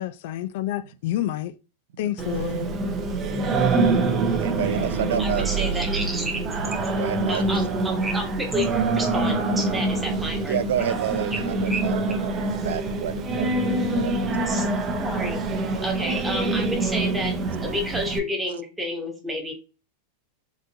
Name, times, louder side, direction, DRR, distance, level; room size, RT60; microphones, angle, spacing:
voice 1, 0.0-1.5 2.0-2.7, left 13 dB, 60° left, 0.3 m, -28 dB
Singing, 2.2-18.2, right 3 dB, 25° right, 0.5 m, -25 dB
voice 2, 4.4-5.7 6.9-7.4 10.5-13.5 13.9-14.1, right 9 dB, 85° right, 0.3 m, -29 dB
voice 3, 5.2-6.4 7.3-10.6 11.3-11.4 11.7-11.8 14.5-14.7 15.0-15.4 15.8-19.5, equal, 5° right, 0.9 m, -30 dB
3.7 x 2.5 x 2.7 m
supercardioid pair, 150°, 0 cm